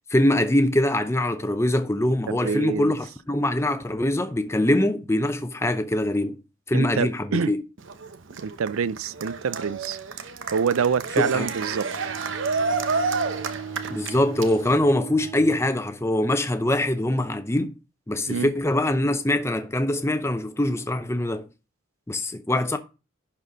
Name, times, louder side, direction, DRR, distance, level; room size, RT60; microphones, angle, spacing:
voice 1, 0.0-6.4 6.7-7.6 11.2-11.5 13.9-17.7 18.1-21.5 22.1-22.8, left 1 dB, 10° left, 0.6 m, -23 dB
voice 2, 2.3-2.9 6.7-7.5 8.4-10.0 10.5-11.9 18.2-18.5, right 6 dB, 80° right, 0.4 m, -26 dB
Cheering, 7.8-14.8, right 4 dB, 65° right, 0.8 m, -30 dB
Bowed string instrument, 11.9-16.2, right 6 dB, 40° right, 5.8 m, -38 dB
11.0 x 4.3 x 5.1 m
head